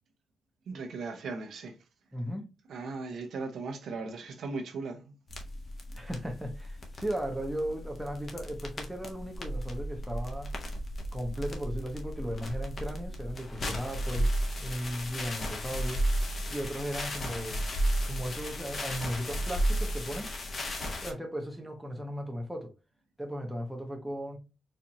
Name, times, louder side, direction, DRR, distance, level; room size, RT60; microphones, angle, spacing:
voice 1, 0.7-1.8 2.7-5.1, right 3 dB, 65° right, 0.7 m, -38 dB
voice 2, 2.1-2.5 5.9-10.5 11.1-14.3 14.6-16.0 16.5-17.6 18.0-20.3 21.0-22.7 23.2-24.4, equal, 5° right, 0.8 m, -36 dB
sound 1, 5.3-21.1, equal, 40° left, 0.8 m, -34 dB
4.4 x 2.5 x 2.7 m
wide cardioid pair, 145°, 0 cm